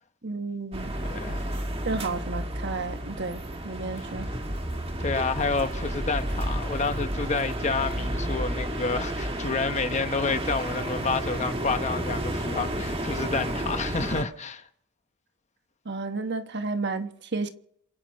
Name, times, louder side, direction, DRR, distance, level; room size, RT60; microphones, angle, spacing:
voice 1, 0.2-1.0 1.8-4.4 15.8-17.5, right 3 dB, 55° right, 1.3 m, -32 dB
sound 1, 0.7-14.2, right 1 dB, 25° right, 1.7 m, -31 dB
voice 2, 1.1-1.5 3.9-4.1 5.0-14.7, left 4 dB, 35° left, 1.0 m, -29 dB
28.0 x 9.6 x 5.3 m
head